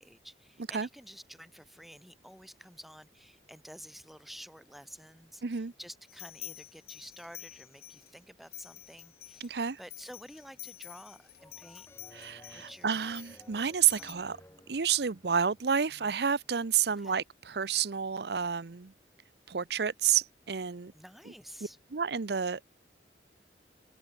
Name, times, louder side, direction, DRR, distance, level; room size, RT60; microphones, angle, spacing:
voice 1, 0.0-11.9 12.5-13.0 13.9-14.4 15.9-16.2 16.9-17.2 20.9-21.8, equal, ahead, 2.3 m, -51 dB
voice 2, 5.4-5.7 9.4-9.8 12.1-14.4 14.7-18.9 19.5-20.9 21.9-22.6, right 7 dB, 65° right, 0.7 m, -30 dB
sound 1, 6.1-8.1 8.5-14.1, left 15 dB, 60° left, 1.3 m, -48 dB
sound 2, 11.4-15.8, left 1 dB, 15° left, 2.5 m, -57 dB
open air
head